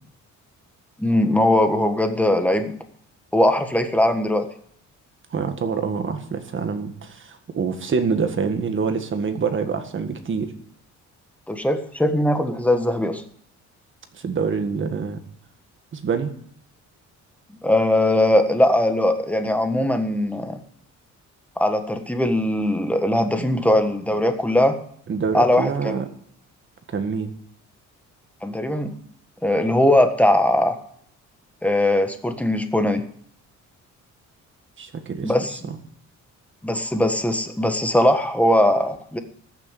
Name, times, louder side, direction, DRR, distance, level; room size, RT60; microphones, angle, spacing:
voice 1, 1.0-2.7 3.3-4.5 11.5-13.2 17.6-20.6 21.6-24.8 25.3-26.0 28.4-29.0 29.4-30.8 31.6-33.0 35.2-35.6 36.6-39.2, left 1 dB, 5° left, 7 dB, 1.5 m, -20 dB
voice 2, 5.3-10.5 14.1-15.2 15.9-16.3 23.4-23.5 25.1-26.1 26.9-27.3 34.8-35.3 35.7-35.8, right 5 dB, 40° right, 8 dB, 1.8 m, -26 dB
14.0 x 6.9 x 9.2 m, 0.65 s
cardioid pair, 125°, 30 cm